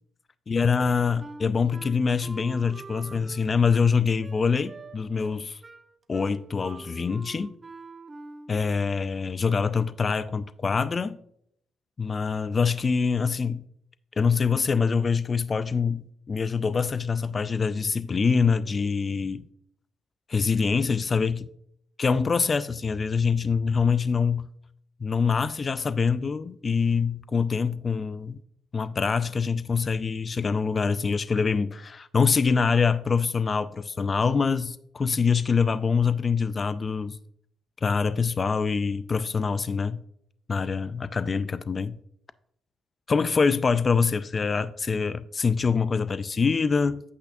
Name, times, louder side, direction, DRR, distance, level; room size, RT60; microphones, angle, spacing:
voice 1, 0.5-5.6 6.1-7.6 8.5-11.2 12.0-13.6 14.2-19.5 20.3-21.5 22.0-24.5 25.0-28.4 28.7-37.2 37.8-40.0 40.5-42.0 43.1-47.0, left 5 dB, 35° left, 0.3 m, -25 dB
Wind instrument woodwind instrument, 1.2-8.7, right 3 dB, 25° right, 0.6 m, -45 dB
8.5 x 8.2 x 2.6 m
cardioid pair, 90°, 0 cm